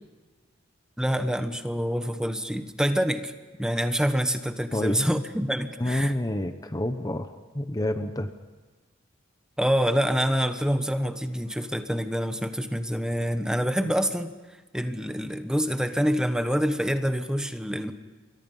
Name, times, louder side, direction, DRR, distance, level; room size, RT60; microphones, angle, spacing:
voice 1, 1.0-3.3 3.6-6.1 9.6-14.3 14.7-17.9, equal, 5° right, 8 dB, 1.2 m, -26 dB
voice 2, 4.7-5.1 5.8-8.3, left 1 dB, 20° left, 8 dB, 1.0 m, -28 dB
28.5 x 23.5 x 5.6 m, 1.3 s
head